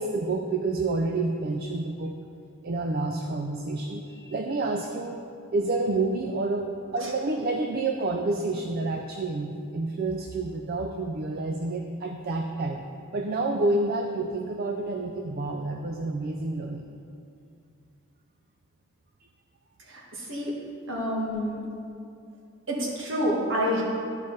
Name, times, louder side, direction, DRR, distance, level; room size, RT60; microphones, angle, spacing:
voice 1, 0.0-2.1 2.6-5.2 5.5-6.7 6.9-12.9 13.1-16.9, right 2 dB, 45° right, 4 dB, 0.4 m, -29 dB
voice 2, 19.9-20.5 20.9-21.6 22.7-23.8, equal, 60° right, -3 dB, 1.6 m, -28 dB
12.0 x 5.0 x 4.1 m, 2.5 s
head